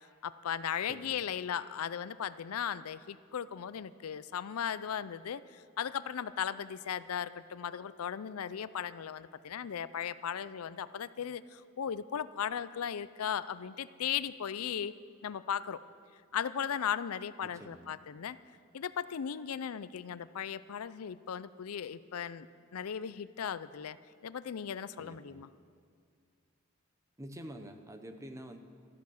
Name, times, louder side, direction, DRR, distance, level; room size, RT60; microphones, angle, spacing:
voice 1, 0.2-14.9 15.2-15.8 16.3-18.4 18.7-22.5 22.7-24.0 24.2-25.5, left 8 dB, 90° left, 16 dB, 0.5 m, -37 dB
voice 2, 0.9-1.2 17.4-17.9 25.0-25.4 27.2-28.6, right 1 dB, 15° right, 7 dB, 0.9 m, -47 dB
14.0 x 13.5 x 6.4 m, 2.1 s
head